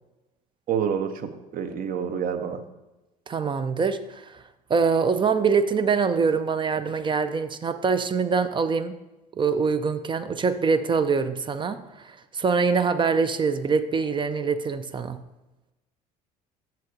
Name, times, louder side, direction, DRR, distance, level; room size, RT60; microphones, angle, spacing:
voice 1, 0.7-2.6, right 7 dB, 45° right, 8 dB, 0.8 m, -28 dB
voice 2, 3.3-4.3 4.7-8.9 9.4-15.2, right 5 dB, 25° right, 10 dB, 0.5 m, -24 dB
10.5 x 7.2 x 2.7 m, 1.0 s
figure-of-eight pair, 60°, 21 cm